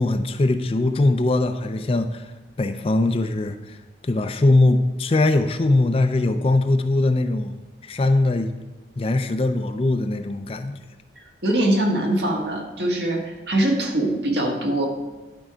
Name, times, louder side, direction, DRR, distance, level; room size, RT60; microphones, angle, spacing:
voice 1, 0.0-2.3 2.6-3.8 4.0-7.6 7.8-8.5 9.0-10.8, left 2 dB, 30° left, 8 dB, 0.4 m, -21 dB
voice 2, 11.4-14.9, right 1 dB, 65° right, 0 dB, 1.6 m, -22 dB
11.0 x 4.6 x 5.0 m, 1.2 s
head